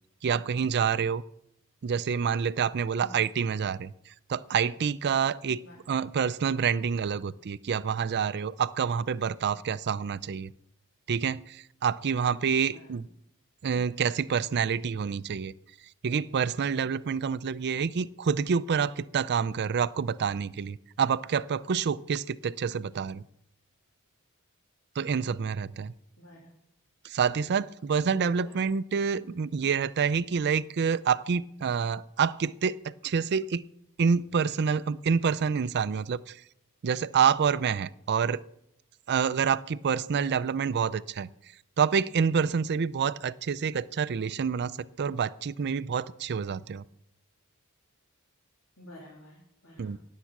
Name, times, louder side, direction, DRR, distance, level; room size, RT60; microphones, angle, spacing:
voice 1, 0.2-1.2 1.8-3.9 4.3-5.6 5.9-10.5 11.1-13.1 13.6-15.5 16.0-23.2 25.0-25.9 27.0-33.7 34.0-36.4 36.8-38.4 39.1-41.3 41.8-44.7 45.0-46.8 49.8-50.0, right 6 dB, 50° right, 15 dB, 0.4 m, -27 dB
voice 2, 12.6-13.0 26.2-26.6 28.0-28.6 29.1-29.3 48.8-50.0, equal, 65° left, -4 dB, 3.1 m, -50 dB
18.0 x 7.5 x 6.0 m, 0.75 s
head